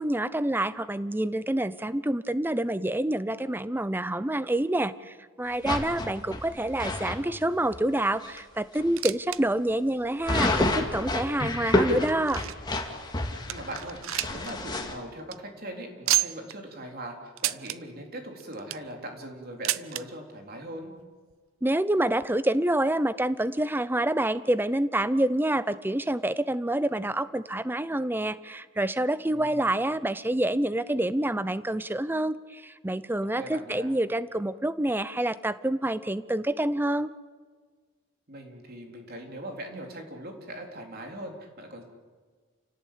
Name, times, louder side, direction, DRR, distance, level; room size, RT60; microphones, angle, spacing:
voice 1, 0.0-12.4 21.6-37.1, right 1 dB, 10° right, 15 dB, 0.6 m, -27 dB
sound 1, 5.6-7.2 7.7-7.8 8.2-8.4 8.7-8.9 10.2-14.9, left 2 dB, 20° left, 2.4 m, -29 dB
sound 2, 8.7-9.4 9.7-9.8 10.5-10.6 11.3-12.7 13.2-13.3 13.5-14.5 14.8-14.9 15.2-15.4 16.1-16.5 17.4-17.8 18.4-18.9 19.6-20.0 21.0-21.1 21.3-21.4 22.2-22.3, right 14 dB, 75° right, 0.7 m, -30 dB
voice 2, 13.5-14.0 14.3-20.9 29.3-29.7 33.4-33.9 38.3-41.8, right 1 dB, 45° right, 2 dB, 3.8 m, -40 dB
29.5 x 18.0 x 8.7 m, 1.5 s
head